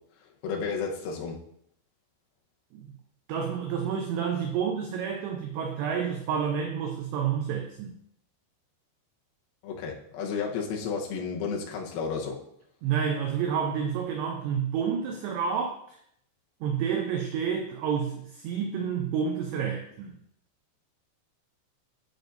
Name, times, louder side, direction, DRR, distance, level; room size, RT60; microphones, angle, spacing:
voice 1, 0.4-1.4 9.6-12.4, left 5 dB, 80° left, -1 dB, 2.2 m, -32 dB
voice 2, 3.3-8.0 12.8-16.0 16.6-20.2, right 7 dB, 85° right, 3 dB, 2.4 m, -29 dB
9.2 x 7.7 x 2.6 m, 0.71 s
omnidirectional pair, 5.8 m